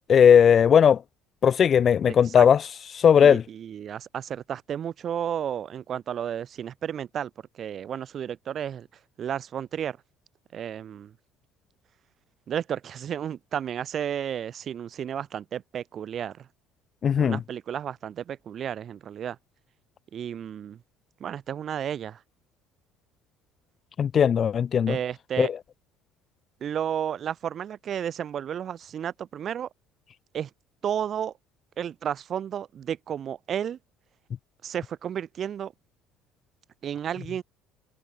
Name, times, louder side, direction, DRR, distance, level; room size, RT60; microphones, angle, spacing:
voice 1, 0.1-1.0 1.4-2.6 2.9-3.4 17.0-17.4 24.0-25.0 25.4-25.5, left 8 dB, 30° left, 0.4 m, -17 dB
voice 2, 2.0-2.5 3.2-8.9 9.2-10.0 10.5-11.1 12.5-16.5 17.2-19.4 20.1-20.8 21.2-22.2 24.9-25.5 26.6-29.7 30.3-30.5 30.8-31.3 31.8-33.8 34.6-35.7 36.8-37.4, right 9 dB, 35° right, 2.4 m, -32 dB
cardioid pair, 160°, 0 cm